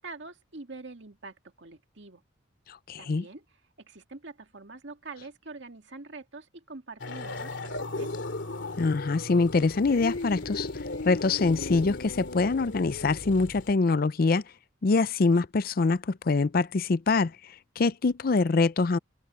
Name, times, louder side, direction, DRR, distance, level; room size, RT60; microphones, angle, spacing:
voice 1, 0.0-2.2 3.0-3.4 3.8-8.1, right 3 dB, 65° right, 2.2 m, -45 dB
voice 2, 2.9-3.2 8.8-10.7 11.0-14.4 14.8-17.3 17.8-19.0, left 3 dB, 50° left, 0.5 m, -24 dB
sound 1, 7.0-13.7, left 2 dB, 70° left, 2.7 m, -36 dB
head